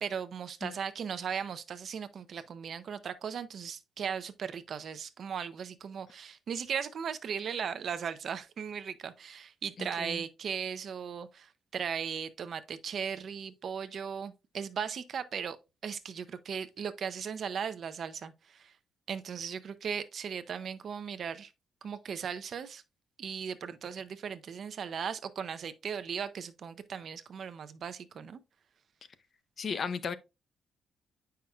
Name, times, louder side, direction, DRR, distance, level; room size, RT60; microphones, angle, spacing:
voice 1, 0.0-15.6 15.8-18.7 19.1-21.5 21.8-22.8 23.2-28.4, right 7 dB, 50° right, 0.5 m, -37 dB
voice 2, 29.6-30.2, left 6 dB, 40° left, 0.5 m, -34 dB
8.7 x 5.7 x 2.3 m
cardioid pair, 160°, 0 cm